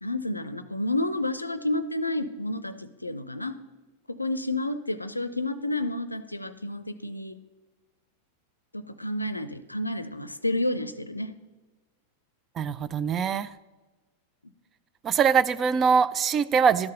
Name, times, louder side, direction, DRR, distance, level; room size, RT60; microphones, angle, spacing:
voice 1, 0.0-3.5 4.1-7.4 8.7-11.4, left 1 dB, 85° left, 12 dB, 0.5 m, -30 dB
voice 2, 12.6-13.5 15.0-16.9, right 6 dB, 25° right, 14 dB, 0.3 m, -23 dB
12.0 x 4.7 x 5.5 m, 1.2 s
figure-of-eight pair, 90°, 0 cm